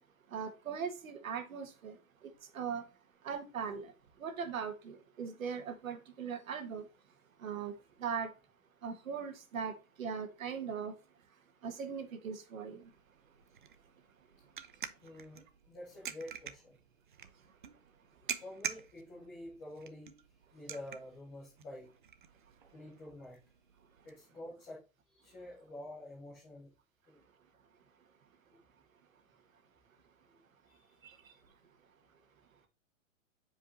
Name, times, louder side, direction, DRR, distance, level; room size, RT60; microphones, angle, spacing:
voice 1, 0.3-2.0 2.2-2.9 3.2-3.9 4.2-6.8 7.4-7.7 8.0-8.3 8.8-10.9 11.6-12.9 31.0-31.2, right 6 dB, 75° right, 1.6 m, -39 dB
sound 1, 12.8-24.1, right 8 dB, 40° right, 0.5 m, -47 dB
voice 2, 15.0-16.8 18.4-20.1 20.5-21.9 22.7-23.4 24.0-26.7 27.1-27.2 30.6-31.0, left 1 dB, 5° left, 0.6 m, -48 dB
7.9 x 5.1 x 2.6 m
hypercardioid pair, 175°, 40 cm